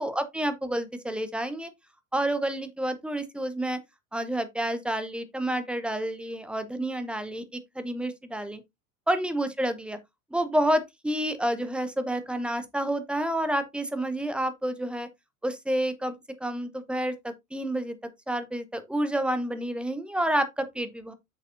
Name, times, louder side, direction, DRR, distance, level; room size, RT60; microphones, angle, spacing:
voice 1, 0.0-1.7 2.1-3.8 4.1-8.6 9.1-10.0 10.3-15.1 15.4-18.0 18.3-21.1, right 1 dB, ahead, 0.9 m, -29 dB
8.5 x 6.4 x 2.5 m
figure-of-eight pair, 80°, 45 cm